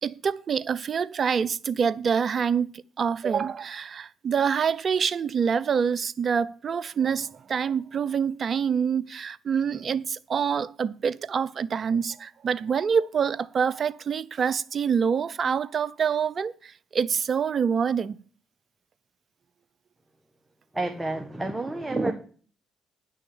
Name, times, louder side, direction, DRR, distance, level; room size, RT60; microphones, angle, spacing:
voice 1, 0.0-18.2, right 6 dB, 50° right, 0.6 m, -26 dB
voice 2, 20.7-22.1, right 2 dB, 15° right, 1.4 m, -29 dB
9.9 x 6.4 x 7.1 m
supercardioid pair, 60°, 0 cm